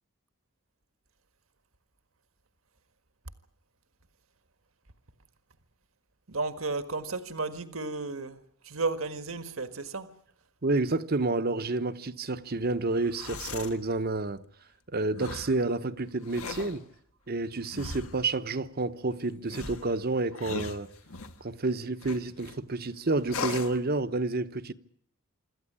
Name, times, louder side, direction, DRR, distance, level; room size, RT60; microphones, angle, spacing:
voice 1, 6.3-10.1, right 3 dB, 75° right, 1.6 m, -33 dB
voice 2, 10.6-14.4 14.9-16.8 17.3-20.9 21.4-24.7, right 2 dB, 45° right, 1.0 m, -29 dB
sound 1, 13.0-13.8 15.2-15.6 16.2-16.8 17.7-18.3 19.5-21.4 22.0-22.6 23.3-23.8, left 4 dB, 90° left, 1.7 m, -38 dB
26.5 x 13.5 x 9.9 m
head